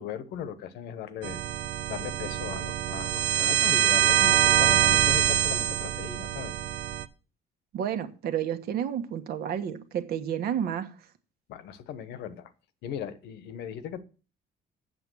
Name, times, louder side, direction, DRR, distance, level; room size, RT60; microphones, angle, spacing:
voice 1, 0.0-1.4 1.9-6.5 11.5-12.5 12.8-14.0, left 9 dB, 80° left, 1.1 m, -38 dB
sound 1, 1.2-7.0, right 12 dB, 85° right, 0.7 m, -24 dB
voice 2, 7.7-10.9, right 9 dB, 70° right, 1.4 m, -30 dB
7.9 x 7.3 x 6.2 m
cardioid pair, 110°, 17 cm